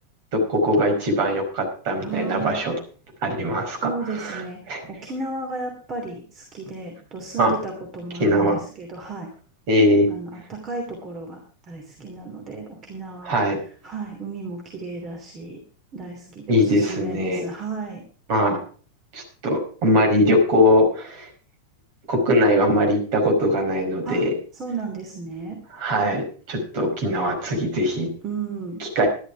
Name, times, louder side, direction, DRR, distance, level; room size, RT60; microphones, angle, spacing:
voice 1, 0.3-2.7 3.2-4.8 7.4-7.5 8.2-8.6 9.7-10.1 13.2-13.6 16.5-17.4 18.3-18.6 19.1-21.3 22.1-24.3 25.8-28.1 28.8-29.1, equal, 45° right, 3 dB, 4.9 m, -21 dB
voice 2, 2.0-2.6 3.8-4.6 4.9-9.3 10.1-11.4 11.7-13.3 13.8-15.6 15.9-18.0 24.0-24.2 24.5-25.6 28.2-28.8, right 3 dB, 30° right, 2 dB, 2.9 m, -33 dB
13.0 x 11.5 x 4.9 m, 0.42 s
figure-of-eight pair, 90°, 0 cm